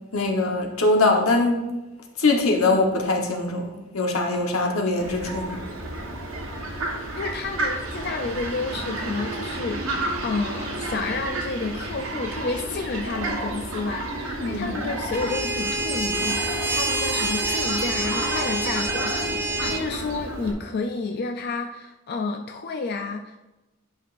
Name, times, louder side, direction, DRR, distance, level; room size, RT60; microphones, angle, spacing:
voice 1, 0.1-1.7 2.2-5.6 14.4-14.7, left 2 dB, 85° left, 1.1 m, -22 dB
Fowl, 5.0-20.5, right 2 dB, 85° right, 1.4 m, -31 dB
voice 2, 7.2-23.4, left 4 dB, 50° left, 0.4 m, -30 dB
sound 1, 15.1-19.8, right 2 dB, 10° right, 0.5 m, -27 dB
11.0 x 5.3 x 2.5 m
head